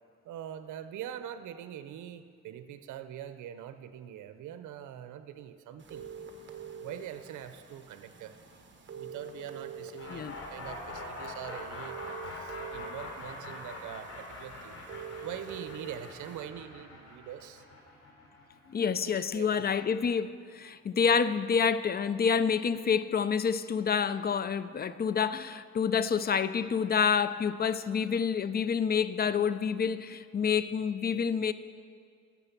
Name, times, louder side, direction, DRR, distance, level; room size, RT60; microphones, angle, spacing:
voice 1, 0.2-6.1 6.8-8.4 8.9-14.8 15.2-17.6 19.1-19.7, right 10 dB, 75° right, 0.7 m, -43 dB
sound 1, 5.8-16.4, right 5 dB, 40° right, 1.4 m, -46 dB
sound 2, 10.0-19.8, left 2 dB, 55° left, 3.1 m, -44 dB
voice 2, 18.7-31.5, left 6 dB, 30° left, 0.5 m, -28 dB
13.5 x 7.2 x 5.9 m
cardioid pair, 90°, 30 cm